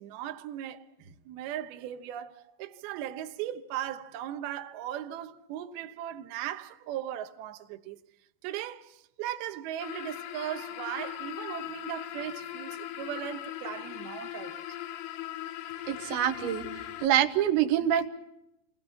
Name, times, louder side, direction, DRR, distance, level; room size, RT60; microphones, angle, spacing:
voice 1, 0.0-8.0 8.4-14.6, right 11 dB, 70° right, 2.5 m, -38 dB
sound 1, 9.8-17.1, left 12 dB, 75° left, 2.3 m, -39 dB
voice 2, 15.9-16.7 17.0-18.1, right 11 dB, 90° right, 4.2 m, -25 dB
29.5 x 20.5 x 5.9 m
omnidirectional pair, 5.9 m